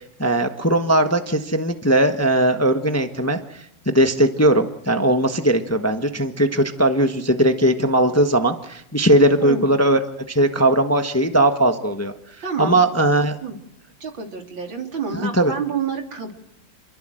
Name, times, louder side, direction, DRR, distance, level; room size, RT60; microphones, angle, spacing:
voice 1, 0.2-3.4 3.9-10.0 10.3-12.1 12.6-13.4 15.1-15.5, right 1 dB, 10° left, 6 dB, 1.1 m, -19 dB
voice 2, 12.4-12.8 13.4-13.6 14.0-16.3, right 6 dB, 80° right, 3 dB, 4.2 m, -28 dB
28.0 x 22.5 x 7.8 m, 0.79 s
omnidirectional pair, 2.1 m